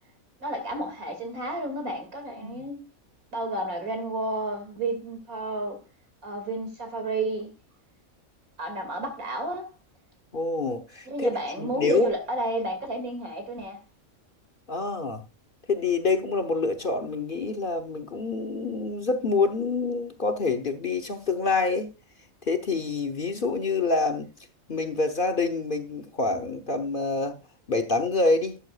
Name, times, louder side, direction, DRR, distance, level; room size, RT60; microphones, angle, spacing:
voice 1, 0.4-2.8 3.3-5.8 6.2-7.5 8.6-9.7 11.1-13.8, right 1 dB, 85° right, 3.0 m, -31 dB
voice 2, 10.3-11.3 11.6-12.1 14.7-15.2 15.7-21.9 22.5-24.3 24.7-27.4 27.7-28.6, left 3 dB, 40° left, 1.1 m, -26 dB
12.5 x 9.1 x 2.4 m
omnidirectional pair, 1.5 m